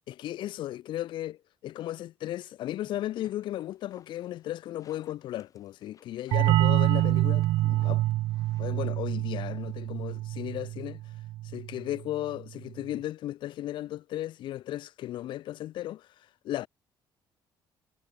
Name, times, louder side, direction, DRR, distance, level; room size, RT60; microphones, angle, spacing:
voice 1, 0.1-8.0 8.6-11.0 11.4-16.7, left 13 dB, 75° left, 0.8 m, -35 dB
sound 1, 2.8-10.8, left 7 dB, 45° left, 2.8 m, -61 dB
sound 2, 6.3-11.8, right 16 dB, 80° right, 0.4 m, -26 dB
cardioid pair, 115°, 8 cm